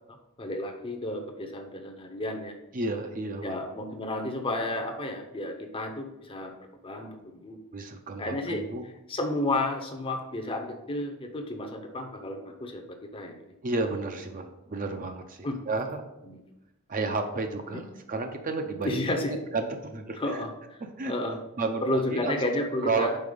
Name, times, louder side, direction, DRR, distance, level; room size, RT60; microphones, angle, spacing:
voice 1, 0.4-2.5 3.4-6.5 6.8-7.6 8.2-8.7 9.1-13.4 15.4-15.6 16.3-16.4 18.8-19.3 20.2-20.5 21.0-21.4 21.8-23.2, left 1 dB, 25° left, 4 dB, 0.6 m, -31 dB
voice 2, 2.7-3.6 7.7-8.8 13.6-16.0 16.9-19.0 19.3-20.4 21.0-21.1 21.6-22.5 22.8-23.1, right 3 dB, 40° right, 6 dB, 0.5 m, -32 dB
5.4 x 4.2 x 5.0 m, 0.94 s
head